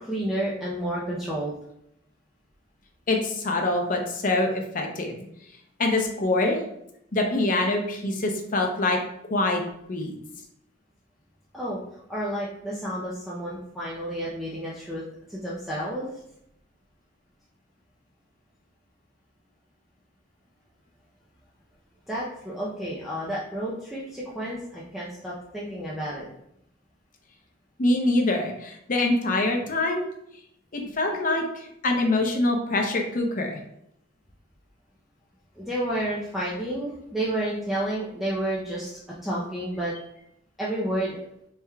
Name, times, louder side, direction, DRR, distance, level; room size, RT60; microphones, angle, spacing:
voice 1, 0.0-1.5 11.5-11.8 12.1-15.0 15.3-16.1 22.1-26.3 35.6-39.9 40.6-41.2, right 1 dB, ahead, -7 dB, 0.5 m, -30 dB
voice 2, 3.1-5.2 5.8-6.6 7.1-9.0 9.3-9.6 9.9-10.2 27.8-30.0 30.7-33.6, left 2 dB, 45° left, 2 dB, 0.7 m, -24 dB
4.6 x 3.4 x 2.3 m, 0.76 s
head